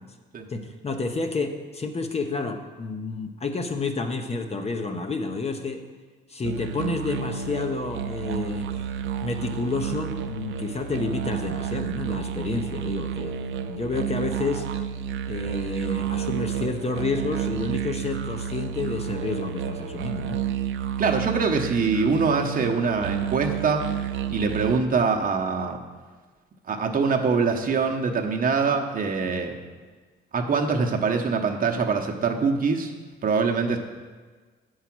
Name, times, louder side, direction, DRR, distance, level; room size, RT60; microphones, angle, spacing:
voice 1, 0.5-5.8 6.3-8.8 9.2-14.7 15.2-20.4, left 3 dB, 30° left, 5 dB, 0.8 m, -30 dB
sound 1, 6.4-24.8, right 9 dB, 75° right, 0.5 m, -30 dB
voice 2, 21.0-25.8 26.7-29.6 30.3-32.9 33.2-33.8, right 5 dB, 45° right, 2 dB, 0.9 m, -24 dB
8.1 x 4.8 x 6.0 m, 1.4 s
cardioid pair, 90°, 20 cm